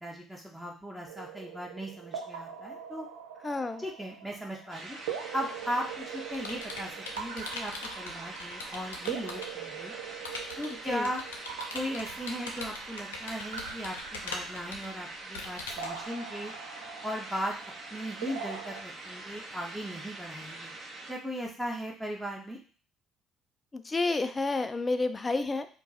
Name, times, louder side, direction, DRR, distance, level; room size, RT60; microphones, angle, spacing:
voice 1, 0.0-3.1 3.8-5.0 5.3-6.9 7.2-9.9 10.6-11.2 11.7-16.5 17.0-20.7 21.1-22.6, equal, 5° right, -2 dB, 0.8 m, -37 dB
sound 1, 1.1-18.8, right 8 dB, 80° right, 0.4 m, -43 dB
voice 2, 3.4-3.8 10.9-11.1 23.7-25.7, left 3 dB, 25° left, 10 dB, 0.4 m, -30 dB
sound 2, 4.7-21.1, right 2 dB, 50° right, 0.8 m, -44 dB
Computer keyboard, 5.6-9.7 10.2-16.0, left 3 dB, 85° left, 0.4 m, -41 dB
2.5 x 2.3 x 3.9 m, 0.40 s
hypercardioid pair, 55°, 0 cm